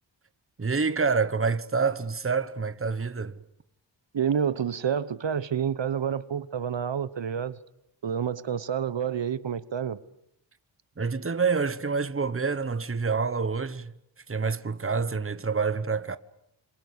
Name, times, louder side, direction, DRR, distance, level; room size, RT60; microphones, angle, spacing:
voice 1, 0.6-3.4 11.0-13.9 14.3-16.2, right 5 dB, 30° right, 1.2 m, -27 dB
voice 2, 4.1-7.6 8.0-10.0, right 8 dB, 70° right, 1.1 m, -28 dB
26.5 x 26.5 x 8.1 m
wide cardioid pair, 100°, 45 cm